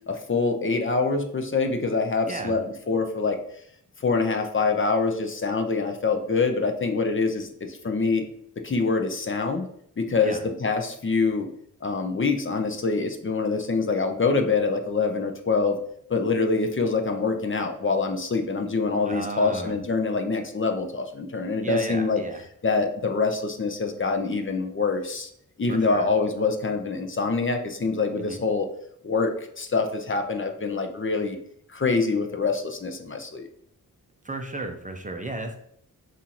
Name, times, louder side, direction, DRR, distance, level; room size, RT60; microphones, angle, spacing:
voice 1, 0.1-3.4 4.0-8.2 8.6-9.7 10.0-11.5 11.8-15.8 16.1-22.2 22.6-25.3 25.6-28.7 29.0-31.4 31.7-33.5, left 4 dB, 35° left, 4 dB, 0.5 m, -25 dB
voice 2, 2.3-2.6 10.2-10.4 19.1-19.8 21.6-22.4 25.7-26.1 28.2-28.4 34.2-35.6, right 2 dB, 25° right, 4 dB, 0.5 m, -34 dB
5.5 x 2.5 x 2.8 m, 0.69 s
wide cardioid pair, 75°, 35 cm